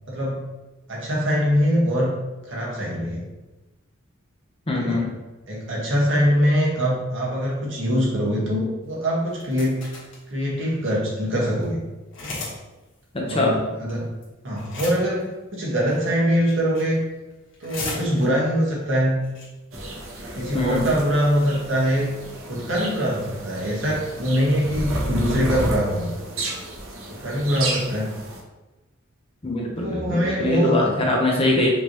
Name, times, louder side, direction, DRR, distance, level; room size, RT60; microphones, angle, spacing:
voice 1, 0.1-0.4 0.9-2.1 2.4-3.3 4.8-5.0 5.5-9.9 10.3-11.8 12.2-12.5 13.2-14.1 14.4-17.0 17.6-19.2 20.3-22.1 22.5-26.1 27.1-28.1 29.8-30.9, equal, 65° right, -5 dB, 1.5 m, -23 dB
voice 2, 4.7-5.1 13.1-13.6 20.5-20.8 29.4-31.7, left 2 dB, 30° left, -2 dB, 0.8 m, -22 dB
sound 1, 9.3-10.2 10.8-10.9 11.2-11.3 11.5-11.6 12.1-12.6 12.8-12.9 13.9-14.2 14.5-15.2 15.9-16.1 16.5-17.0 17.3-18.5 19.0-19.1 19.2-19.4 19.8-20.1, left 3 dB, 65° left, 1.4 m, -35 dB
sound 2, 19.7-28.4, right 1 dB, 80° right, 0.9 m, -32 dB
5.3 x 3.0 x 3.0 m, 1.1 s
head